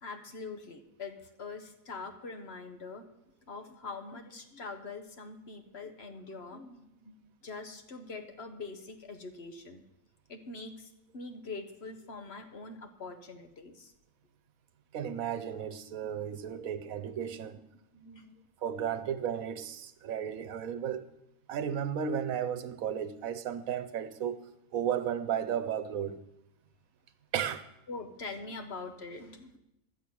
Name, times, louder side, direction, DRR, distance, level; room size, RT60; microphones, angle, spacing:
voice 1, 0.0-3.0 3.5-9.8 10.3-13.9 16.1-16.4 16.8-16.9 17.2-17.5 17.9-18.3 27.9-29.6, left 3 dB, 50° left, 1.2 m, -44 dB
voice 2, 14.9-17.6 18.6-21.1 21.5-24.4 24.7-26.2 27.3-27.6, right 8 dB, 75° right, 1.2 m, -34 dB
11.5 x 6.1 x 8.5 m
omnidirectional pair, 1.5 m